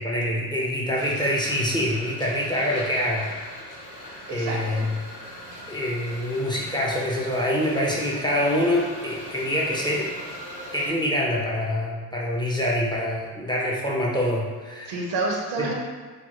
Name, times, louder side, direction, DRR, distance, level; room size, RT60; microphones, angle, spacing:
voice 1, 0.0-3.3 4.3-5.0 5.7-10.1 10.7-15.0 15.6-15.7, left 1 dB, 10° left, -3 dB, 0.5 m, -25 dB
sound 1, 0.9-10.9, equal, 50° left, 1.4 m, -40 dB
voice 2, 4.3-4.9 14.9-15.8, right 2 dB, 85° right, -1 dB, 0.7 m, -28 dB
3.0 x 2.0 x 2.9 m, 1.5 s
supercardioid pair, 70°, 41 cm